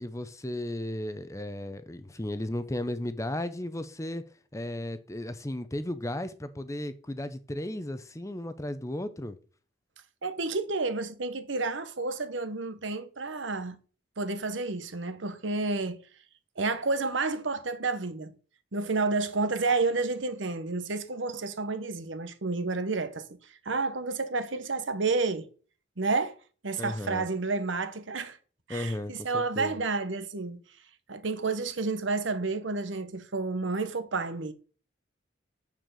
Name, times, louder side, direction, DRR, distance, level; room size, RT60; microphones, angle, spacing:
voice 1, 0.0-4.2 4.5-9.4 26.8-27.3 28.7-29.8, left 1 dB, 15° left, 0.7 m, -35 dB
voice 2, 10.2-13.8 14.2-16.0 16.6-18.3 18.7-23.4 23.6-25.5 26.0-26.4 26.6-28.4 28.7-30.6 31.1-34.5, right 3 dB, 75° right, 1.0 m, -30 dB
6.6 x 6.4 x 6.8 m
head